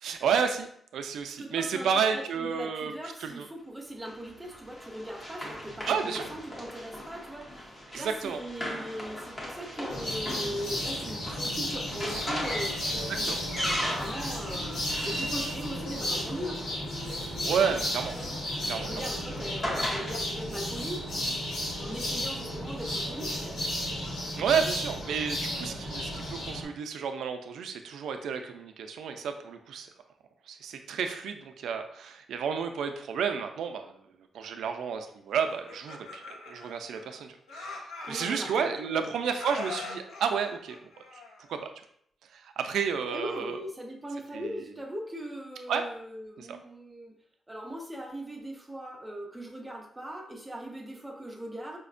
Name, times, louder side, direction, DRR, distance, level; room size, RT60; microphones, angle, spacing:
voice 1, 0.0-2.9 3.2-3.5 5.9-6.3 7.9-8.4 13.2-13.4 17.4-18.1 18.6-18.9 24.4-29.9 30.5-33.9 34.3-40.8 41.5-41.7 42.3-43.6 44.3-44.5 45.7-45.9 46.4-46.6, right 6 dB, 85° right, 6 dB, 0.4 m, -31 dB
voice 2, 1.4-13.3 13.9-16.6 18.8-21.1 21.8-23.6 38.1-39.1 43.1-47.1 47.5-51.8, equal, 10° right, 1 dB, 0.5 m, -39 dB
Run, 4.0-16.7 17.7-20.2, equal, 25° left, 0.8 m, -38 dB
sound 1, 9.9-26.6, left 1 dB, 60° left, 1.0 m, -33 dB
Laughter, 35.5-37.2 37.5-39.0 39.3-41.6, left 3 dB, 90° left, 0.7 m, -42 dB
5.0 x 2.1 x 2.5 m, 0.69 s
wide cardioid pair, 150°, 0 cm